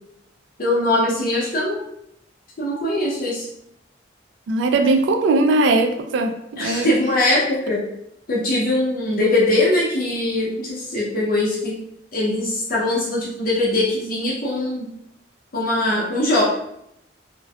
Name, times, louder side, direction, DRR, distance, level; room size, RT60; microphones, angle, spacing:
voice 1, 0.6-1.8 2.6-3.5 6.6-7.8 8.3-11.7 12.1-14.9 15.5-16.4, left 1 dB, 50° left, -6 dB, 0.6 m, -21 dB
voice 2, 4.5-6.9, right 2 dB, 75° right, 5 dB, 0.3 m, -19 dB
2.5 x 2.1 x 2.2 m, 0.80 s
head